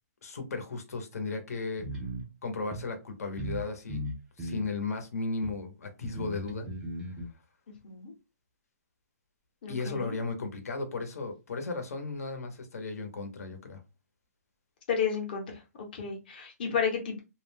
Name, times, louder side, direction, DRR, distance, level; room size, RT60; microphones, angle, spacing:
voice 1, 0.2-1.9 2.4-4.0 4.4-6.7 9.7-13.8, left 3 dB, 65° left, 0.8 m, -35 dB
sound 1, 1.8-2.2 2.7-2.8 3.4-3.6 3.9-4.7 5.4-5.5 6.0-7.2, right 1 dB, 5° right, 0.4 m, -37 dB
voice 2, 9.6-10.2 14.9-15.6 15.9-17.2, left 6 dB, 35° left, 0.8 m, -32 dB
2.4 x 2.1 x 3.3 m
hypercardioid pair, 170°, 9 cm